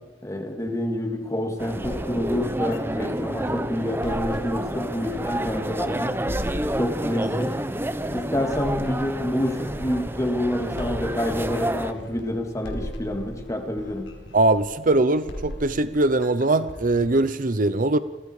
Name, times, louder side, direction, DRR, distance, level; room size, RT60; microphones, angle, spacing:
voice 1, 0.2-6.1 6.8-7.6 8.1-14.1, left 1 dB, 20° left, 3 dB, 3.0 m, -27 dB
sound 1, 1.6-11.9, right 1 dB, 15° right, 0.9 m, -29 dB
sound 2, 1.8-17.2, equal, 85° left, 4.7 m, -39 dB
voice 2, 14.3-18.0, right 2 dB, 50° right, 13 dB, 0.9 m, -21 dB
30.0 x 21.5 x 5.0 m, 1.2 s
head